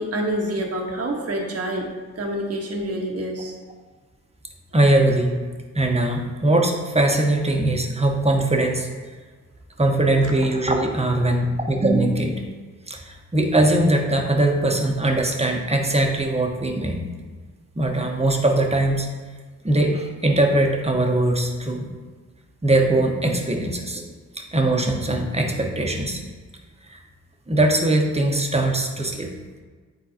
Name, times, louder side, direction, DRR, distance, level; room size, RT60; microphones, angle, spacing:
voice 1, 0.0-1.9 2.2-3.5, right 1 dB, 45° right, 1 dB, 1.2 m, -27 dB
voice 2, 4.7-5.4 5.7-8.9 9.8-12.4 12.9-17.1 17.7-19.1 19.6-21.9 22.6-24.1 24.5-26.2 26.9-27.0 27.5-29.3, right 1 dB, 20° right, 1 dB, 1.1 m, -21 dB
9.1 x 3.9 x 2.8 m, 1.5 s
cardioid pair, 50°, 35 cm